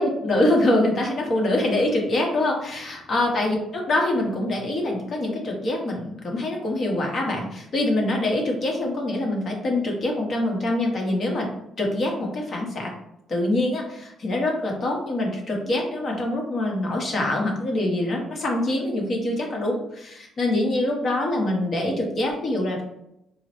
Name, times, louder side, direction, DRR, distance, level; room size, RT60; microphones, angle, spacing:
voice 1, 0.0-11.5 11.8-12.9 13.3-22.8, left 1 dB, 50° left, 0 dB, 1.1 m, -24 dB
4.3 x 2.1 x 3.0 m, 0.81 s
cardioid pair, 90°, 0 cm